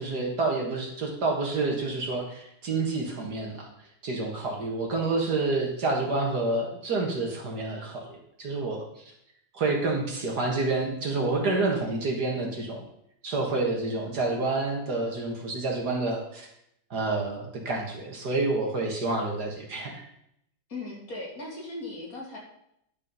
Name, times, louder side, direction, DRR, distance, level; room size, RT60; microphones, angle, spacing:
voice 1, 0.0-3.7 4.0-9.0 9.5-12.8 13.2-16.5 16.9-20.0, right 3 dB, 50° right, 1 dB, 2.0 m, -28 dB
voice 2, 20.7-22.4, left 2 dB, 40° left, -1 dB, 2.4 m, -38 dB
10.5 x 6.5 x 5.5 m, 0.76 s
omnidirectional pair, 2.3 m